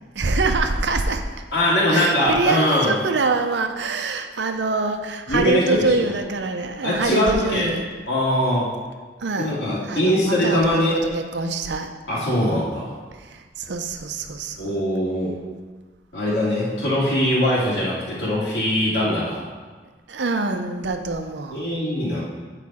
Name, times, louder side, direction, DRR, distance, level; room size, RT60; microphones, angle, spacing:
voice 1, 0.2-1.2 1.9-7.8 9.2-9.6 9.9-11.9 13.2-14.8 20.1-21.7, right 3 dB, 85° right, 6 dB, 0.6 m, -25 dB
voice 2, 1.5-2.9 5.3-6.1 6.8-7.7 8.1-8.7 9.4-11.1 12.1-13.0 14.6-15.3 16.1-19.4 21.5-22.2, left 1 dB, 80° left, -8 dB, 2.4 m, -21 dB
8.4 x 4.9 x 4.2 m, 1.3 s
head